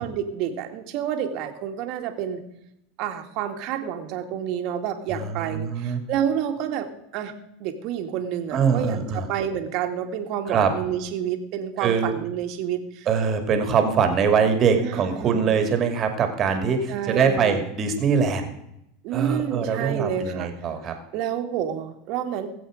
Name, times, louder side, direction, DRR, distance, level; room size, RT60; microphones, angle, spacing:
voice 1, 0.0-2.4 3.0-13.1 14.8-15.5 16.9-17.7 19.0-20.5 21.1-22.5, right 9 dB, 55° right, 6 dB, 2.0 m, -29 dB
voice 2, 5.5-6.0 8.5-9.3 10.5-10.7 11.8-12.1 13.1-18.5 19.1-20.9, right 6 dB, 35° right, 6 dB, 2.3 m, -22 dB
19.5 x 7.9 x 5.0 m, 0.81 s
supercardioid pair, 120°, 0 cm